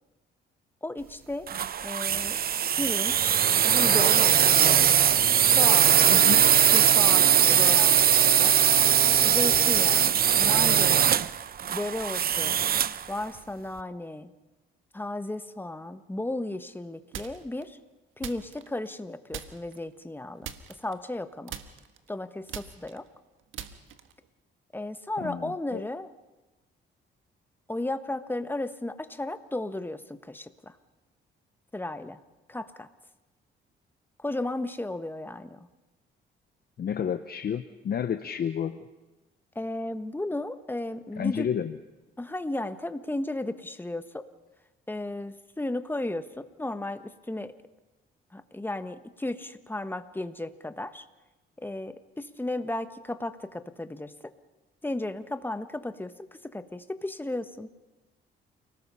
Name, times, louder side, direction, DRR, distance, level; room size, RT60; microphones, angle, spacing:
voice 1, 0.8-1.5 1.8-2.4 2.7-4.9 5.4-6.0 6.7-8.5 9.2-11.2 11.7-12.6 13.1-14.3 14.9-17.8 18.2-21.5 22.1-23.1 24.7-26.1 27.7-30.8 31.7-32.2 32.5-32.9 34.2-35.7 39.5-41.5 42.2-44.2 44.9-47.5 48.3-51.1 51.6-54.1 54.8-56.1 56.4-57.7, left 2 dB, 10° left, 10 dB, 1.4 m, -34 dB
sound 1, 1.5-13.0, right 9 dB, 50° right, 0.8 m, -21 dB
voice 2, 6.1-6.4 25.2-25.8 36.8-38.8 41.2-41.7, left 8 dB, 50° left, 9 dB, 1.0 m, -30 dB
sound 2, 17.1-17.6 18.2-19.0 19.3-19.8 20.4-21.2 21.5-24.3, right 10 dB, 85° right, 1.5 m, -41 dB
29.0 x 19.0 x 5.7 m, 1.1 s
cardioid pair, 90°, 20 cm